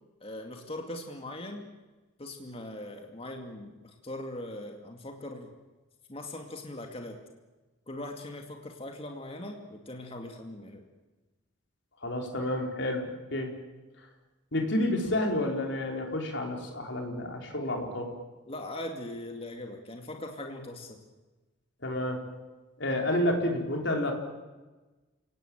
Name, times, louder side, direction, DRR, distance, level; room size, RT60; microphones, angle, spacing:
voice 1, 0.2-1.7 2.2-5.5 6.1-7.2 7.9-10.8 18.5-21.0, left 1 dB, 30° left, 3 dB, 2.4 m, -40 dB
voice 2, 12.0-13.5 14.5-18.1 21.8-22.2 22.8-24.1, left 1 dB, 60° left, 2 dB, 4.8 m, -30 dB
30.0 x 18.0 x 9.0 m, 1.2 s
head